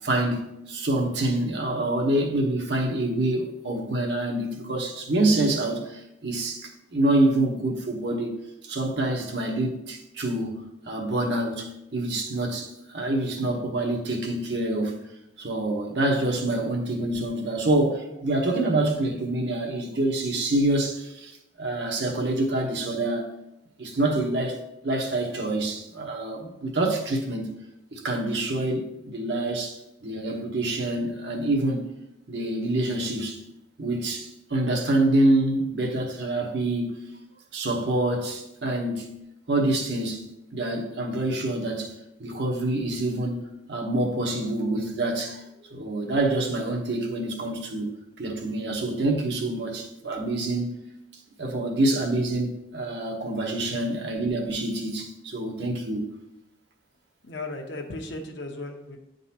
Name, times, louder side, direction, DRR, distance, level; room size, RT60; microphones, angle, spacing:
voice 1, 0.0-8.4 8.7-15.0 15.4-23.3 23.8-27.5 27.9-31.9 32.3-33.4 33.8-37.0 37.5-39.1 39.5-43.4 43.7-47.9 48.2-50.8 51.4-56.0, right 1 dB, 65° right, 1.0 m, -26 dB
voice 2, 57.2-59.0, left 2 dB, 70° left, 0.9 m, -36 dB
9.3 x 3.9 x 2.8 m
head